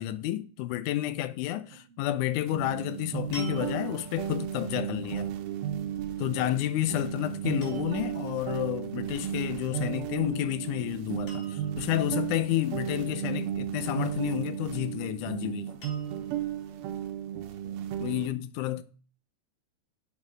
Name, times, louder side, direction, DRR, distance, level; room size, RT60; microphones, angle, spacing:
voice 1, 0.0-5.4 6.2-15.7 18.0-18.8, left 14 dB, 80° left, 1.9 m, -30 dB
sound 1, 2.4-2.6 3.3-4.2 6.6-7.0 7.6-8.1 10.1-10.5 10.8-10.9 11.3-11.9 14.2-14.8 15.8-16.4 17.2-17.3, equal, 50° left, 4.4 m, -47 dB
sound 2, 2.5-18.3, right 10 dB, 90° right, 2.7 m, -34 dB
voice 2, 12.8-13.5 17.3-17.9, right 8 dB, 60° right, 1.9 m, -49 dB
7.5 x 5.3 x 6.2 m
omnidirectional pair, 4.0 m